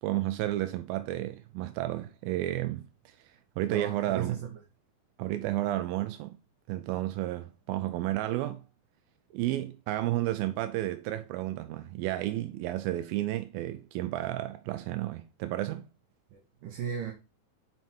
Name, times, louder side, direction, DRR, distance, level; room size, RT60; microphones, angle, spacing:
voice 1, 0.0-4.4 5.2-6.4 6.7-8.6 9.3-15.9, right 15 dB, 85° right, 2.2 m, -32 dB
voice 2, 3.7-4.5 16.3-17.1, right 8 dB, 70° right, 2.5 m, -35 dB
5.8 x 5.5 x 4.5 m
omnidirectional pair, 4.6 m